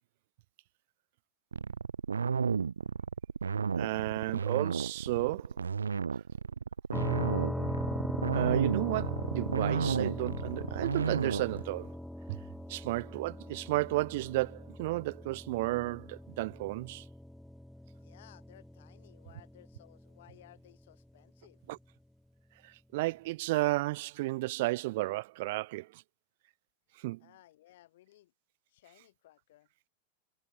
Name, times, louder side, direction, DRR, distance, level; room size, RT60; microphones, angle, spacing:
sound 1, 1.5-11.6, right 6 dB, 75° right, 0.5 m, -32 dB
voice 1, 3.8-5.6 8.3-11.9 12.3-12.4 12.7-17.0 21.7-21.8 22.6-26.0 27.0-27.2, right 20 dB, 50° right, 1.2 m, -33 dB
sound 2, 6.9-20.6, left 1 dB, ahead, 0.5 m, -40 dB
voice 2, 17.9-21.6 27.2-28.3 28.7-29.7, left 15 dB, 55° left, 7.0 m, -59 dB
figure-of-eight pair, 90°, 0 cm